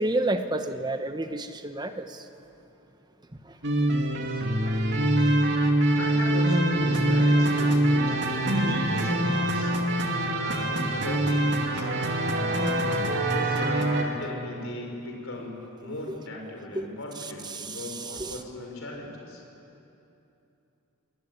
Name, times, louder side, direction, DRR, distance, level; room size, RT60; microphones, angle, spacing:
voice 1, 0.0-2.2 8.7-8.8 16.7-16.9 17.5-18.4, right 2 dB, 20° right, 8 dB, 1.1 m, -30 dB
sound 1, 3.6-14.0, right 1 dB, 55° right, 2.6 m, -24 dB
voice 2, 6.0-9.7 10.3-11.9 13.1-19.4, left 1 dB, 60° left, 1 dB, 5.3 m, -38 dB
26.0 x 20.0 x 9.5 m, 2.9 s
head